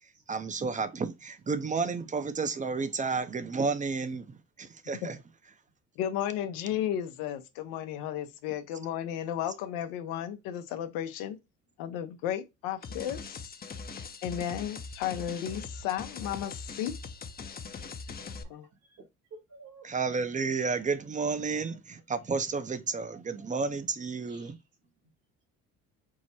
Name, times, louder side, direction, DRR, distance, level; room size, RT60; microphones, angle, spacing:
voice 1, 0.3-5.2 19.8-24.6, right 4 dB, 20° right, 0.6 m, -31 dB
voice 2, 6.0-11.4 11.8-13.5 14.2-16.9 18.5-18.7, left 10 dB, 90° left, 0.8 m, -34 dB
sound 1, 12.8-18.4, left 4 dB, 25° left, 0.6 m, -41 dB
voice 3, 19.3-19.9 21.3-21.8 24.2-24.9, right 3 dB, 70° right, 2.3 m, -52 dB
4.6 x 2.1 x 4.1 m
supercardioid pair, 80°, 35 cm